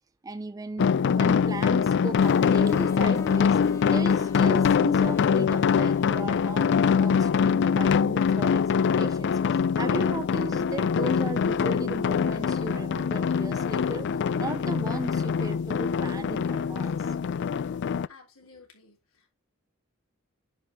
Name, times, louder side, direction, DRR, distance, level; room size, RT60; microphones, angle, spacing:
voice 1, 0.2-3.6 3.9-6.7 7.0-14.1 14.4-17.2, right 2 dB, 15° right, 0.4 m, -36 dB
sound 1, 0.8-18.1, left 6 dB, 55° left, 0.3 m, -24 dB
sound 2, 2.2-9.0, left 1 dB, 15° left, 1.3 m, -46 dB
voice 2, 18.1-19.3, left 4 dB, 90° left, 3.6 m, -53 dB
9.8 x 6.0 x 3.4 m
head